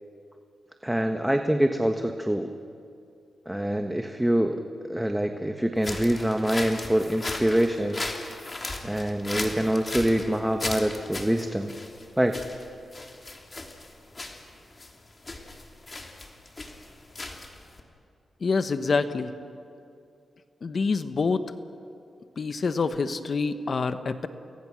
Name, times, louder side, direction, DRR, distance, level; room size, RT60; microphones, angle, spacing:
voice 1, 0.8-2.5 3.5-8.0 8.8-11.7 12.2-12.4, right 1 dB, 10° right, 5 dB, 1.3 m, -25 dB
sound 1, 5.8-17.8, left 2 dB, 35° left, 3.1 m, -37 dB
voice 2, 18.4-19.3 20.6-21.5 22.4-24.3, left 4 dB, 55° left, 10 dB, 1.2 m, -26 dB
29.0 x 21.5 x 6.4 m, 2.5 s
cardioid pair, 65°, 0 cm